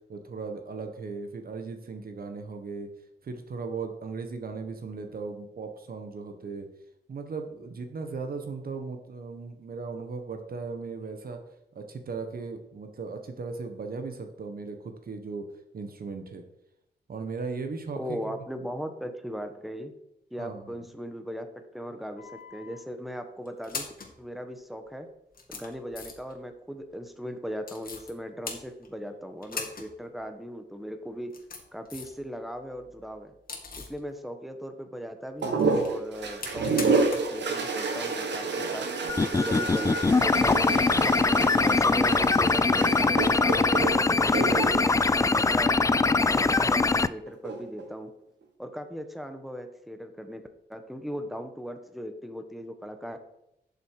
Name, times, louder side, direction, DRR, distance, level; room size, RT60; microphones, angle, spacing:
voice 1, 0.1-2.9 3.2-6.7 7.1-11.4 11.7-15.5 15.7-16.4 17.1-18.7 20.4-20.8, right 4 dB, 55° right, 6 dB, 1.5 m, -37 dB
voice 2, 17.9-19.9 20.3-21.5 21.7-23.9 24.2-25.1 25.5-31.3 31.7-33.3 33.8-38.9 39.3-40.8 41.3-45.8 46.2-48.1 48.6-53.2, equal, ahead, 7 dB, 1.3 m, -38 dB
sound 1, 22.2-22.8 23.5-24.1 24.9-25.0 25.3-26.4 27.6-28.1 28.4-29.1 29.4-29.9 30.2-30.3 31.1-32.2 32.6-34.0 35.4-37.4 37.6-37.7 39.5-39.6, left 4 dB, 55° left, 2.2 m, -40 dB
sound 2, 35.4-46.1 47.3-47.8, right 4 dB, 85° right, 1.7 m, -29 dB
sound 3, 39.1-47.1, left 3 dB, 20° left, 0.3 m, -22 dB
12.0 x 6.9 x 4.8 m, 0.82 s
wide cardioid pair, 110°, 18 cm